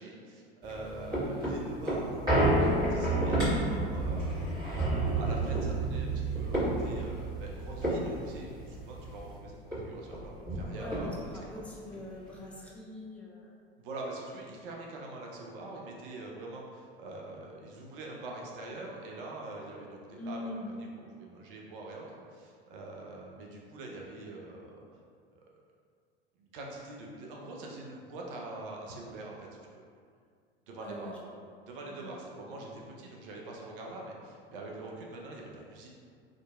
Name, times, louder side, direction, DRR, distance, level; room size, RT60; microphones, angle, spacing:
voice 1, 0.0-4.3 4.6-9.6 9.8-11.3 13.8-20.4 20.8-22.0 22.3-24.8 25.3-25.4 26.4-29.8 30.7-31.1 31.7-35.9, right 2 dB, 60° right, -2 dB, 0.6 m, -44 dB
sound 1, 0.6-9.3 9.7-9.8 10.1-11.4 11.9-12.0, right 1 dB, 15° right, 1.4 m, -30 dB
voice 2, 10.7-13.5 20.2-20.7 30.8-31.3 31.9-32.2, left 1 dB, 5° left, -5 dB, 0.4 m, -43 dB
2.7 x 2.5 x 2.2 m, 2.1 s
figure-of-eight pair, 75°, 31 cm